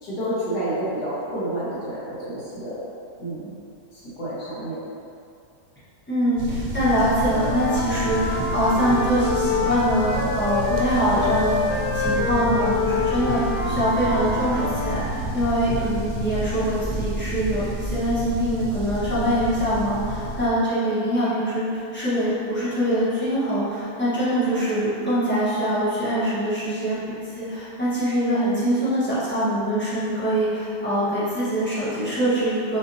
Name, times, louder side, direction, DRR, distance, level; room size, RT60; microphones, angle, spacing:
voice 1, 0.0-2.8 3.2-3.5 3.9-4.8 28.3-28.6, right 1 dB, 65° left, -9 dB, 1.7 m, -29 dB
voice 2, 6.1-27.0 27.2-32.8, equal, 10° left, -13 dB, 0.9 m, -23 dB
sound 1, 6.4-20.5, right 1 dB, 75° right, 0.6 m, -30 dB
Wind instrument woodwind instrument, 7.3-10.9 11.2-15.1, left 4 dB, 80° left, 1.3 m, -27 dB
5.9 x 2.6 x 2.7 m, 2.5 s
omnidirectional pair, 1.9 m